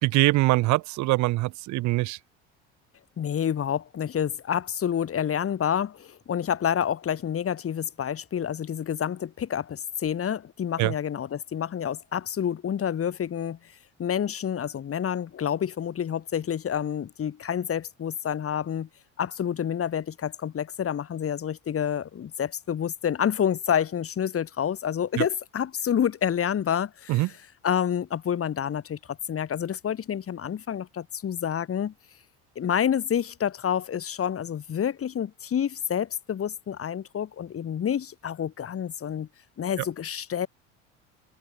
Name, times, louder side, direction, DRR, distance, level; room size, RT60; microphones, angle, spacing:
voice 1, 0.0-2.2 10.8-10.9 25.2-25.3 27.1-27.3, right 19 dB, 55° right, 0.9 m, -23 dB
voice 2, 3.2-13.7 14.0-18.9 19.2-27.3 27.6-31.9 32.6-39.3 39.6-40.5, left 9 dB, 40° left, 4.1 m, -28 dB
open air
hypercardioid pair, 70°, 36 cm